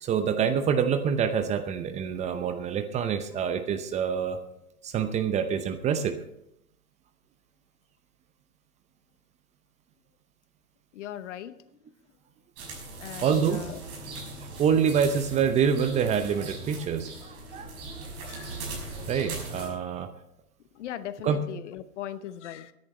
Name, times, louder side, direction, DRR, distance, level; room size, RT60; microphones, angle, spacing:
voice 1, 0.0-4.4 4.8-6.2 13.2-13.6 14.4-17.7 18.0-18.1 19.1-20.1 21.2-21.4, right 7 dB, 15° right, 8 dB, 0.7 m, -26 dB
voice 2, 10.9-11.6 13.0-13.8 18.3-18.6 20.7-22.7, left 11 dB, 50° left, 14 dB, 1.0 m, -39 dB
sound 1, 12.6-19.7, right 2 dB, 35° right, 5.8 m, -39 dB
22.0 x 10.5 x 3.2 m, 0.80 s
figure-of-eight pair, 115°, 45 cm